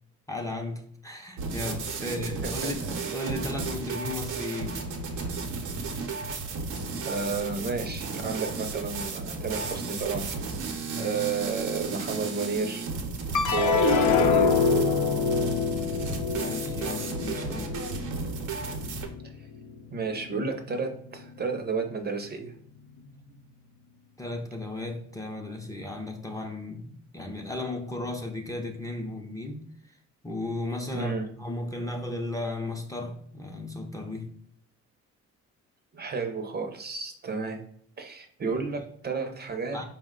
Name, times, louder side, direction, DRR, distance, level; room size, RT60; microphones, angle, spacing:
voice 1, 0.3-4.8 10.9-11.2 16.3-17.8 23.0-23.2 24.2-30.0 30.2-34.3 38.5-38.6 39.7-39.8, left 2 dB, 10° left, 3 dB, 0.5 m, -35 dB
sound 1, 1.4-19.1, right 4 dB, 85° right, 0.7 m, -33 dB
voice 2, 7.0-10.3 11.0-12.9 13.5-14.5 19.9-22.5 30.9-31.3 35.9-37.6 38.0-39.8, right 4 dB, 35° right, 5 dB, 0.6 m, -31 dB
sound 2, 13.3-19.8 20.2-20.9, left 5 dB, 75° left, 0.6 m, -26 dB
4.4 x 2.1 x 3.6 m, 0.65 s
cardioid pair, 90°, 30 cm